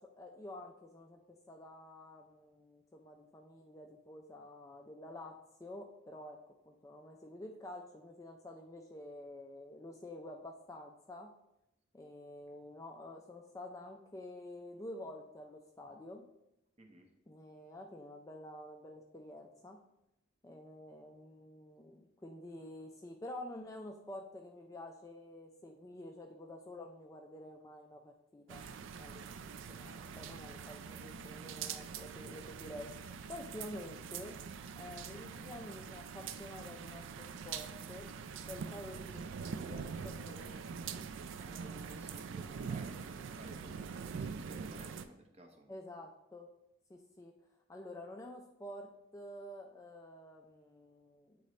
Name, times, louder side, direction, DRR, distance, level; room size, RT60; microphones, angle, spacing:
voice 1, 0.0-6.4 6.7-11.3 11.9-16.3 17.3-19.8 20.4-28.6 29.0-34.4 34.8-38.2 38.5-41.0 45.7-46.5 46.9-47.3 47.7-51.4, left 1 dB, 15° left, 2 dB, 0.3 m, -49 dB
voice 2, 16.8-17.1 34.8-35.0 41.4-45.7, right 1 dB, 30° right, 3 dB, 0.7 m, -56 dB
sound 1, 28.5-45.0, right 6 dB, 65° right, 0.3 m, -44 dB
8.6 x 3.8 x 3.1 m, 0.84 s
head